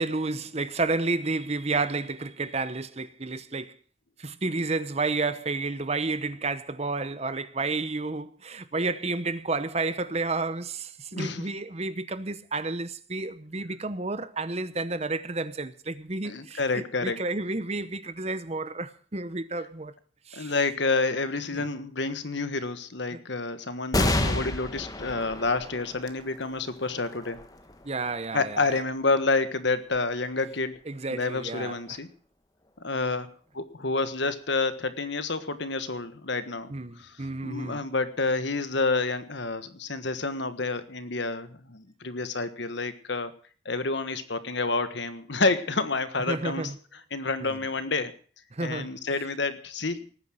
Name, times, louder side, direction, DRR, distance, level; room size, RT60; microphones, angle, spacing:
voice 1, 0.0-3.8 4.2-19.9 20.3-20.5 21.5-21.6 23.1-23.2 27.8-28.8 30.9-32.0 36.7-37.8 46.3-46.7 47.4-47.6 48.5-48.9, right 3 dB, 30° right, 0.9 m, -31 dB
voice 2, 11.1-11.5 16.2-17.2 20.3-27.4 28.3-30.8 31.1-32.1 32.8-33.3 33.5-43.3 43.6-46.7 47.1-48.1 48.6-50.0, left 3 dB, 60° left, 1.4 m, -29 dB
sound 1, 23.9-30.8 31.4-31.5 32.6-33.2, left 1 dB, 20° left, 1.3 m, -32 dB
19.0 x 9.6 x 6.3 m
head